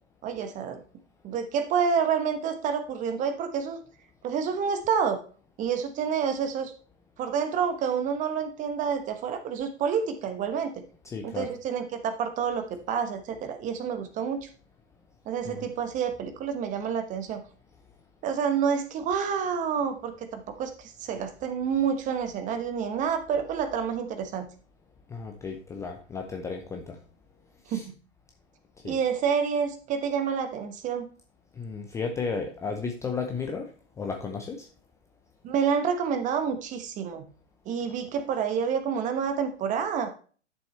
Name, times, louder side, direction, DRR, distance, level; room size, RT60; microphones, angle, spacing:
voice 1, 0.2-0.8 1.2-3.8 4.2-5.2 5.6-6.7 7.2-10.7 11.2-14.5 15.3-17.4 18.2-24.5 27.7-27.9 28.8-31.1 35.4-37.2 37.7-40.1, right 7 dB, 20° right, 9 dB, 1.1 m, -28 dB
voice 2, 11.0-11.5 15.4-15.7 25.1-27.0 27.7-27.9 28.8-29.0 31.6-33.7 34.0-34.7, left 5 dB, 10° left, 3 dB, 0.6 m, -34 dB
11.5 x 6.9 x 3.3 m, 0.40 s
figure-of-eight pair, 120°, 36 cm